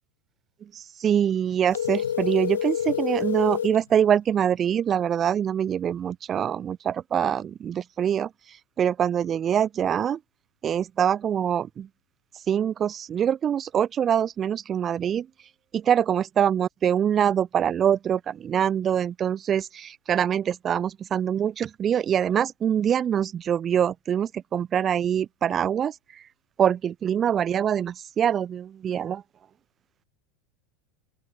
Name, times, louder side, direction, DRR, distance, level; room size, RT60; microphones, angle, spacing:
voice 1, 0.7-8.3 8.8-10.2 10.6-11.9 12.5-15.3 15.7-25.9 26.6-29.2, right 9 dB, 30° right, 1.4 m, -24 dB
sound 1, 1.7-3.8, left 9 dB, 75° left, 7.6 m, -28 dB
open air
figure-of-eight pair, 80°, 0 cm